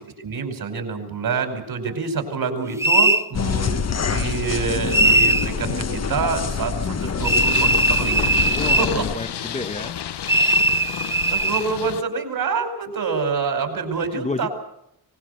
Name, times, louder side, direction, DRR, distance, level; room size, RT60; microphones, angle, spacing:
voice 1, 0.2-8.4 8.8-9.0 11.3-14.5, right 5 dB, 55° right, 6 dB, 5.4 m, -26 dB
sound 1, 2.8-3.3 4.9-5.5 7.2-8.9 10.3-11.7, right 2 dB, 5° right, 0.8 m, -19 dB
sound 2, 3.3-9.2, left 6 dB, 35° left, 1.2 m, -26 dB
Purr, 7.2-12.0, left 10 dB, 75° left, 1.1 m, -31 dB
voice 2, 8.6-10.0 14.0-14.5, left 3 dB, 15° left, 7 dB, 1.0 m, -30 dB
24.0 x 20.5 x 6.8 m, 0.78 s
wide cardioid pair, 175°, 42 cm